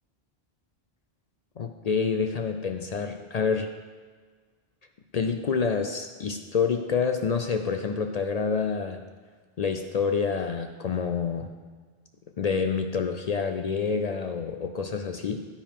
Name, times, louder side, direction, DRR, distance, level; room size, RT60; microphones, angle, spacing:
voice 1, 1.6-3.7 5.1-9.0 9.6-11.5 12.4-15.4, left 5 dB, 55° left, 6 dB, 0.5 m, -27 dB
9.7 x 9.3 x 3.6 m, 1.5 s
omnidirectional pair, 1.1 m